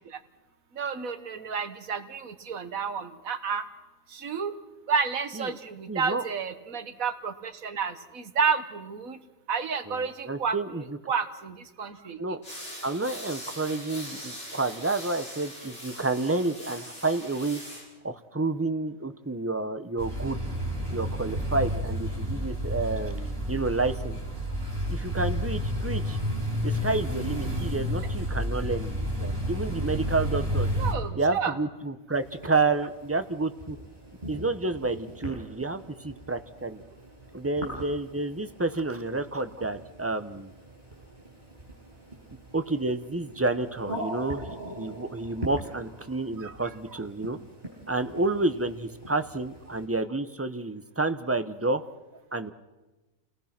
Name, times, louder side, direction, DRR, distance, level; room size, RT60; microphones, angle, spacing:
voice 1, 0.7-3.7 4.1-4.5 4.9-9.2 9.5-10.6 11.1-12.2 30.8-31.5 46.4-46.5, right 5 dB, 80° right, 9 dB, 1.8 m, -30 dB
voice 2, 5.9-6.2 9.9-11.0 12.2-12.4 12.8-17.6 18.0-20.4 20.9-24.2 24.9-26.2 26.6-30.7 31.1-33.8 34.3-36.8 37.3-40.5 42.5-44.4 44.8-47.4 47.9-51.8 52.3-52.5, right 3 dB, 15° right, 9 dB, 0.8 m, -29 dB
sound 1, 12.4-17.9, equal, 45° left, 7.0 m, -42 dB
sound 2, 20.0-30.9, equal, 45° right, 5.1 m, -30 dB
sound 3, 32.1-49.9, right 1 dB, 30° right, 7.8 m, -43 dB
29.5 x 18.5 x 6.0 m, 1.1 s
omnidirectional pair, 1.4 m